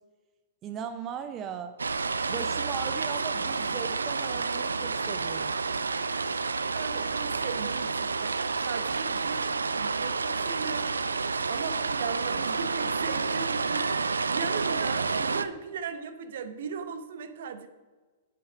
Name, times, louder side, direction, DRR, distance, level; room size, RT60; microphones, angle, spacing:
voice 1, 0.6-1.8 2.3-5.5, right 7 dB, 30° right, 9 dB, 0.6 m, -38 dB
sound 1, 1.8-15.5, right 4 dB, 85° right, 0.4 m, -29 dB
voice 2, 6.7-9.5 9.8-11.0 11.5-17.7, right 6 dB, 65° right, 10 dB, 0.9 m, -37 dB
8.6 x 7.3 x 4.9 m, 1.4 s
figure-of-eight pair, 110°, 0 cm